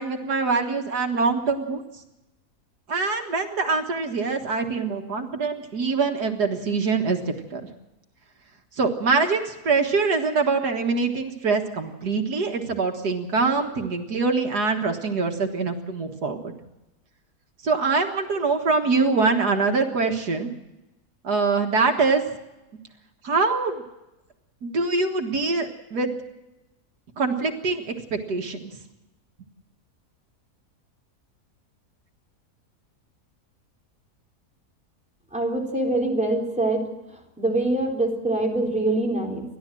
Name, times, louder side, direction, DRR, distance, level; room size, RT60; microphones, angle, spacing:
voice 1, 0.0-1.8 2.9-7.2 7.5-7.6 8.8-16.5 17.6-20.5 21.2-22.2 23.2-23.7 24.6-26.1 27.2-28.7, right 4 dB, 80° right, 4 dB, 2.1 m, -24 dB
voice 2, 35.3-36.9 37.4-39.4, right 2 dB, 5° right, -1 dB, 3.8 m, -24 dB
29.5 x 12.0 x 7.6 m, 0.97 s
omnidirectional pair, 1.7 m